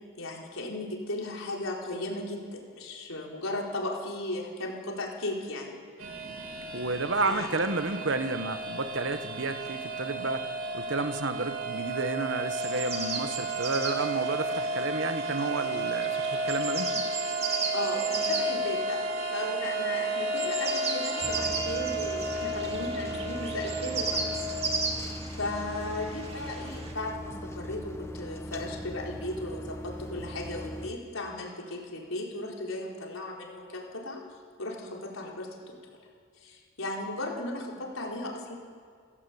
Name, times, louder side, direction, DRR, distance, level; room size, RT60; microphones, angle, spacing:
voice 1, 0.2-5.8 7.2-7.5 17.7-24.5 24.9-25.0 25.4-34.2 34.6-35.8 36.4-38.5, left 2 dB, 75° left, -1 dB, 4.5 m, -36 dB
sound 1, 6.0-24.9, right 2 dB, 85° right, 3.8 m, -33 dB
voice 2, 6.7-10.4 10.7-17.0, right 3 dB, 60° right, 9 dB, 1.4 m, -31 dB
sound 2, 12.6-26.9, right 4 dB, 30° right, 2.7 m, -36 dB
sound 3, 21.2-30.9, equal, 10° left, 1.1 m, -40 dB
29.5 x 15.0 x 8.5 m, 2.1 s
head